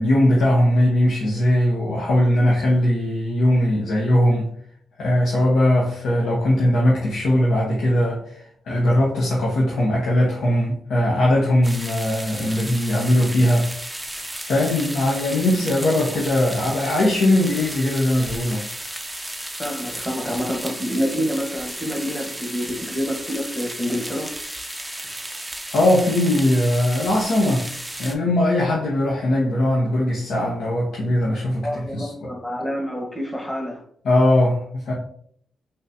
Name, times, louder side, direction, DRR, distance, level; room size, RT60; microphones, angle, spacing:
voice 1, 0.0-4.5 5.0-14.0 14.5-18.6 25.7-27.7 28.0-32.3 34.0-34.9, left 1 dB, 75° left, -4 dB, 0.8 m, -20 dB
sound 1, 11.6-28.2, right 1 dB, 5° right, 0.5 m, -34 dB
voice 2, 19.6-24.4 31.6-33.8, equal, 15° left, 1 dB, 1.1 m, -27 dB
3.7 x 2.8 x 2.6 m, 0.63 s
cardioid pair, 65°, 0 cm